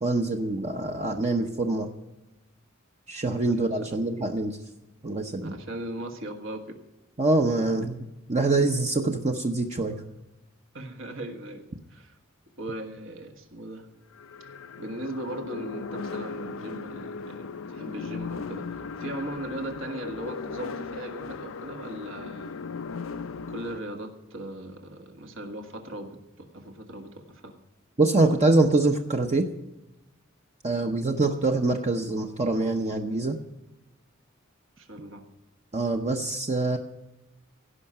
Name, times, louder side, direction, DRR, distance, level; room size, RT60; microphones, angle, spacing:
voice 1, 0.0-1.9 3.1-4.6 5.0-5.5 7.2-10.0 28.0-29.4 30.6-33.4 35.7-36.8, right 2 dB, 35° right, 3 dB, 0.8 m, -25 dB
voice 2, 3.4-4.0 5.4-6.8 10.7-11.6 11.9-12.2 12.6-13.9 14.8-18.7 19.0-22.6 23.5-27.5 34.8-35.2, right 1 dB, 70° right, 4 dB, 1.7 m, -38 dB
sound 1, 13.0-13.1 14.1-23.8, left 4 dB, 75° left, 0.5 m, -37 dB
16.5 x 5.7 x 8.6 m, 1.0 s
head